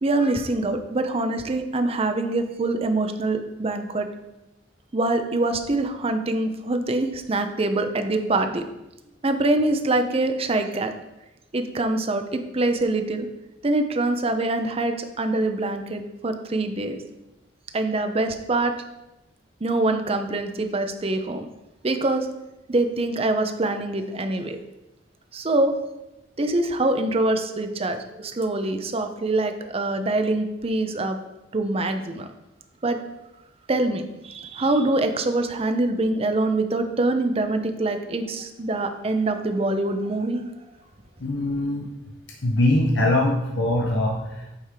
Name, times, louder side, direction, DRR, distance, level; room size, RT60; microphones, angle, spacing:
voice 1, 0.0-4.1 4.9-8.6 9.2-10.9 11.5-13.3 13.6-17.0 17.7-18.7 19.6-21.5 21.8-22.3 22.7-24.6 25.3-25.7 26.4-31.2 31.5-32.3 32.8-33.0 33.7-40.5, right 2 dB, 30° right, 7 dB, 0.6 m, -24 dB
voice 2, 41.2-41.9 42.4-44.6, left 1 dB, 70° left, -1 dB, 0.9 m, -22 dB
8.5 x 3.6 x 4.8 m, 0.95 s
head